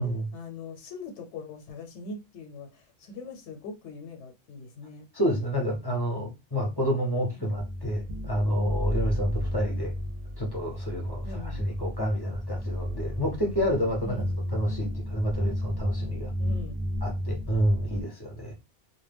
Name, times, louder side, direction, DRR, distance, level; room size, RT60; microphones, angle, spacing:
voice 1, 0.3-5.1 7.3-7.6 11.2-11.7 14.0-14.4 16.4-16.8, left 3 dB, 85° left, 0.9 m, -42 dB
voice 2, 5.1-9.9 10.4-14.2 14.5-16.3 17.0-18.5, equal, 30° left, 0.5 m, -29 dB
sound 1, 7.5-18.0, equal, 60° right, 0.4 m, -33 dB
2.1 x 2.1 x 3.3 m
omnidirectional pair, 1.2 m